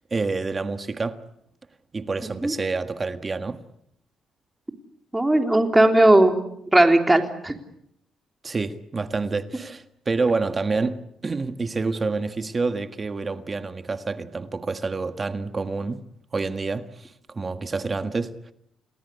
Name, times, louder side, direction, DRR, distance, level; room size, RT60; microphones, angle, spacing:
voice 1, 0.1-1.2 1.9-3.6 8.4-16.0 16.3-18.5, right 3 dB, 30° right, 1.6 m, -28 dB
voice 2, 5.1-6.4 6.7-7.5, right 1 dB, 10° right, 3.6 m, -17 dB
29.5 x 19.0 x 8.4 m
cardioid pair, 90°, 0 cm